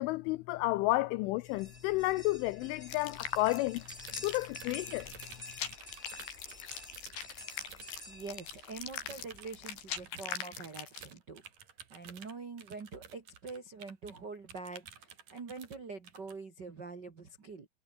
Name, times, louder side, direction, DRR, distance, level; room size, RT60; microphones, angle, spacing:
voice 1, 0.0-3.8 4.2-5.1, left 20 dB, 80° left, 3.0 m, -31 dB
sound 1, 1.4-10.1, left 2 dB, 10° left, 4.6 m, -51 dB
sound 2, 2.9-11.2, left 8 dB, 60° left, 5.1 m, -42 dB
sound 3, 3.8-8.1 8.5-9.5 10.0-14.2 14.5-15.8 16.0-16.3, right 7 dB, 45° right, 4.0 m, -53 dB
voice 2, 8.1-11.4 11.9-17.7, right 4 dB, 85° right, 0.9 m, -45 dB
omnidirectional pair, 5.7 m